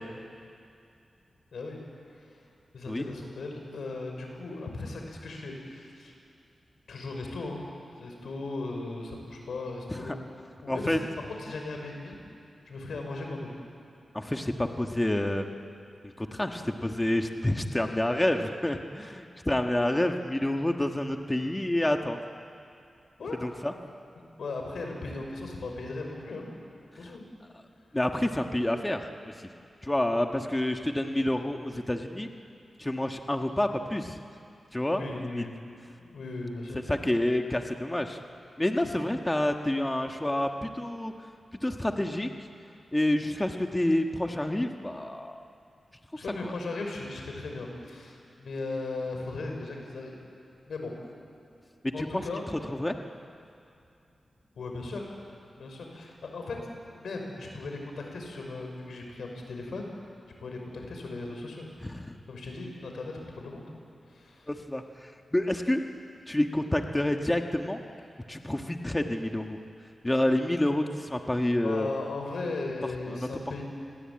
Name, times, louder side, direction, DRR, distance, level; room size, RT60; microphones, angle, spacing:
voice 1, 2.7-6.1 6.9-7.6 8.0-10.2 10.6-11.0 11.4-12.2 12.7-13.5 23.2-23.5 24.4-26.5 26.9-27.2 34.9-35.6 36.0-36.8 38.8-38.9 46.2-50.2 50.7-50.9 51.9-52.5 54.6-55.1 55.6-56.6 56.9-59.9 60.4-61.7 62.3-63.7 64.1-64.5 71.6-73.6, left 3 dB, 85° left, 2 dB, 5.7 m, -37 dB
voice 2, 10.7-11.0 14.1-15.5 16.2-22.2 23.4-23.7 27.0-27.1 27.9-29.3 29.8-32.3 32.8-34.1 34.7-35.4 36.9-38.2 38.6-41.1 41.6-42.3 42.9-45.4 46.4-46.5 51.8-52.2 52.7-52.9 61.8-62.1 64.5-65.8 66.3-67.8 68.3-69.6 70.0-71.9 73.1-73.3, left 1 dB, 15° left, 4 dB, 1.5 m, -28 dB
29.5 x 21.5 x 8.8 m, 2.5 s
wide cardioid pair, 85°, 0 cm